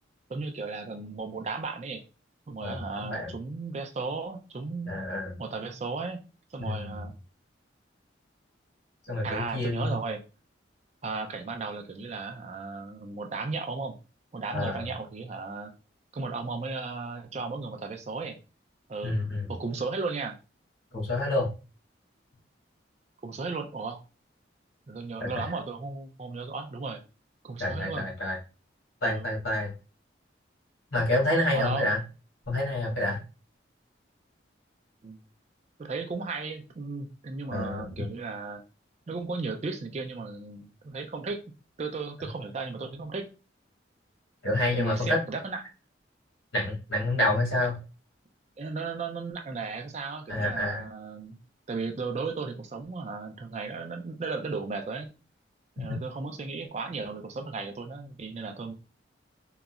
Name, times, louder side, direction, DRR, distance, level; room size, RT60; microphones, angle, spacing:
voice 1, 0.3-2.0 2.5-4.9 5.4-6.2 6.5-7.1 9.2-10.2 11.0-14.0 14.3-15.7 16.1-18.4 18.9-19.1 19.5-20.4 23.2-24.0 24.9-27.0 27.4-28.1 29.1-29.2 31.5-31.8 35.0-35.2 35.8-38.6 39.1-41.4 41.8-43.3 44.7-45.6 48.6-51.4 51.7-55.1 55.8-58.7, right 4 dB, 35° right, 0.4 m, -35 dB
voice 2, 2.6-3.3 4.9-5.4 6.6-7.0 9.0-9.9 14.5-14.8 19.0-19.4 20.9-21.5 25.2-25.4 27.6-28.4 29.0-29.7 30.9-32.0 32.5-33.2 37.5-37.9 44.4-45.2 46.5-47.8 50.3-50.8, left 1 dB, 80° left, 1.6 m, -28 dB
3.7 x 2.0 x 2.3 m
head